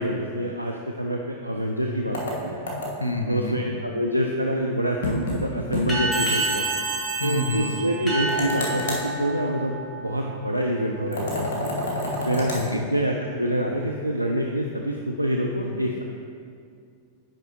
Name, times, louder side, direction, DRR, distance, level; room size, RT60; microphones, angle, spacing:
voice 1, 0.0-2.6 3.3-6.7 7.2-11.5 12.2-12.5 12.9-16.0, equal, 90° right, 1 dB, 0.3 m, -26 dB
sound 1, 2.1-3.2 5.0-5.4 5.7-5.9 6.2-6.3 8.3-9.1 11.1-12.7, left 1 dB, 60° left, 1.4 m, -29 dB
voice 2, 3.0-3.6 7.2-7.8 12.5-12.9 15.6-16.0, left 1 dB, 85° left, 4 dB, 0.6 m, -29 dB
sound 2, 5.9-11.0, right 3 dB, 15° left, 1.7 m, -30 dB
sound 3, 6.1-8.7, right 3 dB, 10° right, 1.2 m, -31 dB
9.0 x 5.4 x 2.9 m, 2.3 s
figure-of-eight pair, 90°, 0 cm